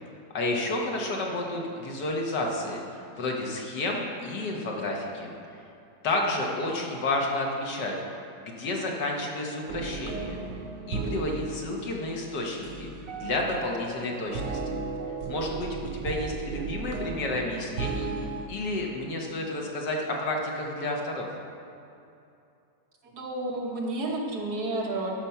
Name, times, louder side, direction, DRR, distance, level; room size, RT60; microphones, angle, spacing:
voice 1, 0.3-5.3 6.0-7.9 8.4-10.4 10.9-12.9 13.2-14.6 15.3-18.1 18.5-21.3, left 2 dB, 75° left, 0 dB, 1.9 m, -31 dB
sound 1, 9.7-18.5, right 4 dB, 90° right, 1.4 m, -35 dB
voice 2, 23.0-25.1, right 2 dB, 65° right, -1 dB, 1.7 m, -31 dB
12.5 x 5.2 x 5.7 m, 2.7 s
omnidirectional pair, 1.9 m